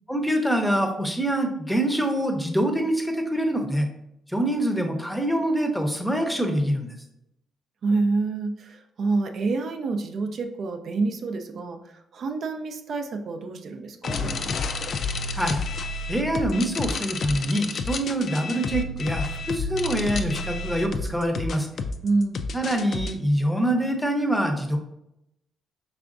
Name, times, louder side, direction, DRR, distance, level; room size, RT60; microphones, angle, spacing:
voice 1, 0.1-3.9 4.3-6.9 15.3-15.6 16.1-21.7 22.5-24.8, right 1 dB, 5° left, 4 dB, 0.7 m, -25 dB
voice 2, 7.8-11.8 12.1-14.3 22.0-22.5, right 3 dB, 60° right, 5 dB, 0.5 m, -27 dB
sound 1, 14.0-23.1, left 3 dB, 55° left, 0.4 m, -30 dB
5.0 x 3.4 x 2.5 m, 0.83 s
cardioid pair, 90°, 0 cm